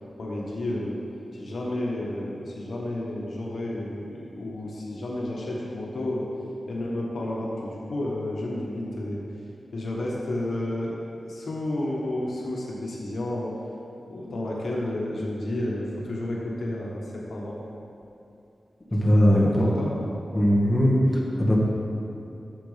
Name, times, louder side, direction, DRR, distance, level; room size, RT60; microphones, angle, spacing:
voice 1, 0.2-1.0 1.3-6.3 6.7-9.2 9.7-11.0 11.3-13.5 14.1-17.6 19.3-19.9, left 1 dB, 80° left, -4 dB, 1.4 m, -31 dB
voice 2, 18.9-19.4 20.3-21.6, equal, 20° left, -4 dB, 1.7 m, -20 dB
12.5 x 7.1 x 3.4 m, 2.8 s
wide cardioid pair, 100°, 0 cm